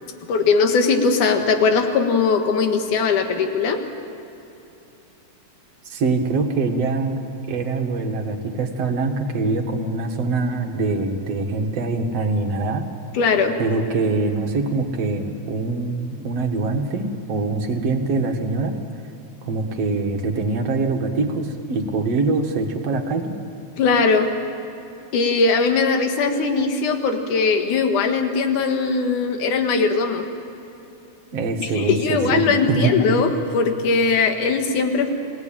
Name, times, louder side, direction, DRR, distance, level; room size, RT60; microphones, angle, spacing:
voice 1, 0.3-3.8 13.1-13.6 23.8-24.3 25.1-30.2 31.6-35.1, left 4 dB, 80° left, 5 dB, 3.1 m, -20 dB
voice 2, 5.9-7.2 7.5-12.9 13.6-18.7 19.4-23.3 31.3-32.9, right 3 dB, 55° right, 4 dB, 2.6 m, -23 dB
28.5 x 18.0 x 9.0 m, 2.9 s
omnidirectional pair, 3.5 m